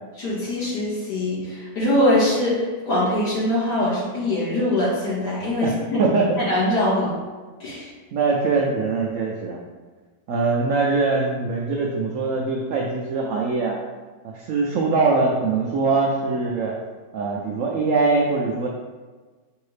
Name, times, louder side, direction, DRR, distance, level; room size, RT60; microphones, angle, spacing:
voice 1, 0.2-6.0 6.4-7.1 7.6-7.9, left 1 dB, 65° left, -8 dB, 2.3 m, -22 dB
voice 2, 6.0-6.4 8.1-9.6 10.3-13.8 14.2-16.8 17.1-18.7, right 3 dB, 85° right, -1 dB, 0.7 m, -22 dB
5.5 x 2.7 x 3.2 m, 1.4 s
omnidirectional pair, 2.0 m